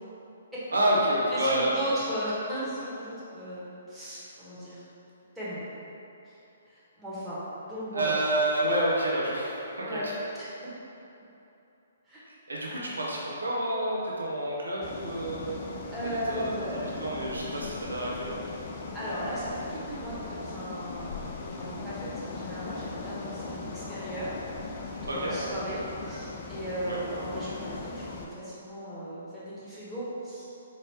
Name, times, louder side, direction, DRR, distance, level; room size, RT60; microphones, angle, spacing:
voice 1, 0.7-1.7 7.9-10.0 12.5-15.6 16.3-18.4 25.1-25.4 26.9-27.0, right 1 dB, 75° right, -4 dB, 0.8 m, -29 dB
voice 2, 1.3-4.8 5.3-5.6 6.3-6.4 6.7-8.2 9.8-10.1 12.1-12.2 15.9-17.0 18.9-30.5, equal, 5° right, -12 dB, 1.2 m, -36 dB
sound 1, 14.8-28.3, left 3 dB, 40° left, 0.4 m, -39 dB
4.5 x 2.9 x 3.3 m, 2.9 s
figure-of-eight pair, 125°, 0 cm